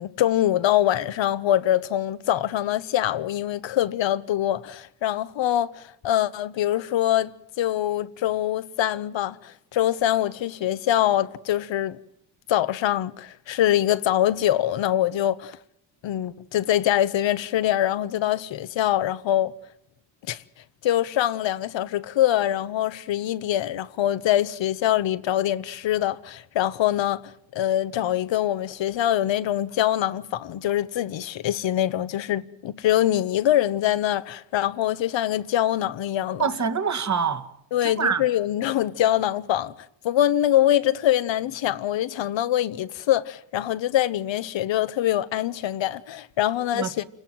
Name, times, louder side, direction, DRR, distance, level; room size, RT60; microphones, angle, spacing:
voice 1, 0.0-7.3 7.6-12.0 12.5-15.6 16.0-19.5 20.3-20.4 20.8-27.2 27.5-36.4 37.7-39.7 40.0-47.0, left 12 dB, 70° left, 1.1 m, -24 dB
voice 2, 36.4-37.5 37.8-38.2 46.7-47.0, right 6 dB, 35° right, 1.8 m, -25 dB
28.5 x 18.5 x 7.7 m
cardioid pair, 80°, 46 cm